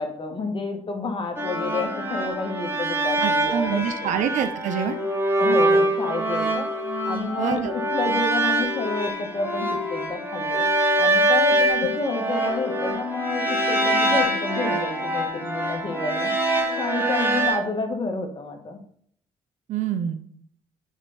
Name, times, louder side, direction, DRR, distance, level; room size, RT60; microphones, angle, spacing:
voice 1, 0.0-4.1 5.3-6.7 7.0-10.6 11.0-16.3 16.8-18.8, left 3 dB, 35° left, 4 dB, 1.7 m, -30 dB
sound 1, 1.4-17.6, right 1 dB, 15° right, 2.0 m, -24 dB
sound 2, 2.5-2.6 3.5-3.6 4.5-5.2 5.7-6.2 6.6-7.2 7.6-8.2 8.6-9.1 9.6-10.1 10.5-11.1 11.5-12.0 12.5-13.0 13.5-14.0, left 7 dB, 65° left, 1.3 m, -34 dB
voice 2, 3.2-5.0 7.4-7.7 11.6-11.7 19.7-20.2, right 8 dB, 60° right, 9 dB, 0.8 m, -26 dB
7.2 x 5.2 x 4.2 m, 0.63 s
hypercardioid pair, 55°, 14 cm